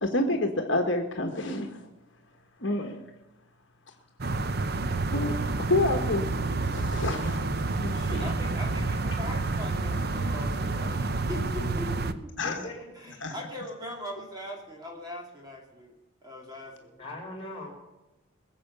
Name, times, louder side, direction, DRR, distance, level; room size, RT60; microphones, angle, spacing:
voice 1, 0.0-1.9 2.6-3.0 5.1-5.3 5.6-6.3 6.6-7.4 7.8-8.3 12.4-12.6 13.2-13.3, left 2 dB, 60° left, 4 dB, 1.3 m, -28 dB
sound 1, 4.2-12.1, right 3 dB, 50° right, 0.7 m, -29 dB
voice 2, 7.9-12.3 12.9-16.0 16.2-16.9, left 1 dB, 20° right, 1 dB, 2.5 m, -40 dB
voice 3, 12.4-12.9 17.0-17.7, left 2 dB, 25° left, 2 dB, 4.9 m, -39 dB
21.0 x 7.6 x 6.8 m, 1.0 s
head